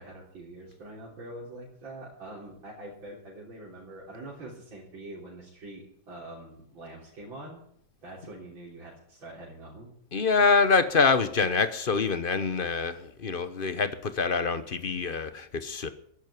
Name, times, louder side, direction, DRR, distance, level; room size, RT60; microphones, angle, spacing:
voice 1, 0.0-7.6 8.0-9.9, right 1 dB, 80° right, -6 dB, 4.6 m, -44 dB
voice 2, 10.1-15.9, left 4 dB, 40° left, 12 dB, 0.8 m, -25 dB
11.5 x 10.5 x 9.8 m, 0.68 s
omnidirectional pair, 2.1 m